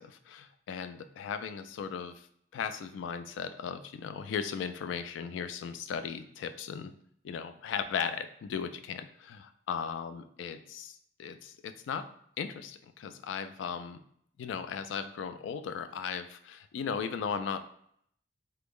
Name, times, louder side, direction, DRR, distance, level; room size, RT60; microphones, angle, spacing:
voice 1, 0.0-2.3 2.5-6.9 7.2-12.1 12.4-14.0 14.4-17.6, left 7 dB, 90° left, 10 dB, 0.3 m, -37 dB
3.3 x 2.0 x 3.6 m, 0.67 s
head